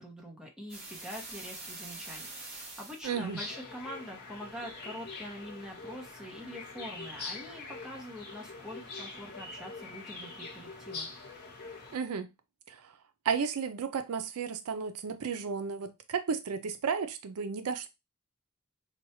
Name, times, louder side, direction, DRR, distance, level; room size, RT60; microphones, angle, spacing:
voice 1, 0.0-11.1, equal, 5° right, 0.8 m, -44 dB
sound 1, 0.7-3.1, right 2 dB, 45° right, 1.5 m, -44 dB
sound 2, 3.0-12.0, left 3 dB, 45° left, 1.0 m, -44 dB
voice 2, 3.0-3.4 11.9-12.3 12.7-12.9 13.3-17.9, right 6 dB, 75° right, 0.4 m, -33 dB
4.4 x 2.3 x 2.9 m
head